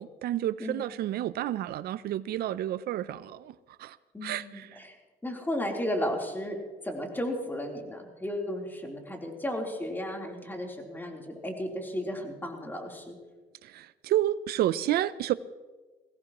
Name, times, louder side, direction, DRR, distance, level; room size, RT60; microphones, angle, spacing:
voice 1, 0.0-3.5 3.8-4.9 13.6-15.3, right 13 dB, 70° right, 0.6 m, -30 dB
voice 2, 4.1-5.0 5.2-6.6 6.8-13.2, left 1 dB, 10° left, 3.6 m, -34 dB
22.0 x 17.5 x 3.0 m
cardioid pair, 110°, 17 cm